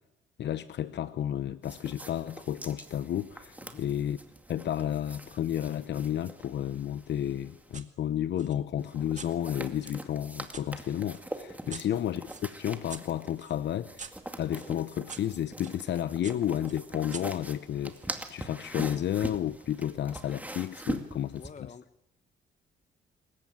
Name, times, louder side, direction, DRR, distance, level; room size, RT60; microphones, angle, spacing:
voice 1, 0.4-4.2 4.5-14.1 14.4-21.4, left 10 dB, 60° left, 0.8 m, -32 dB
sound 1, 1.6-7.8 8.8-21.5, right 1 dB, 10° right, 2.3 m, -43 dB
sound 2, 7.7-7.9 8.4-10.7 11.1-15.8 16.2-18.1, right 5 dB, 40° right, 2.1 m, -48 dB
voice 2, 21.3-22.1, left 5 dB, 35° left, 1.4 m, -49 dB
26.5 x 15.0 x 9.0 m
cardioid pair, 90°, 20 cm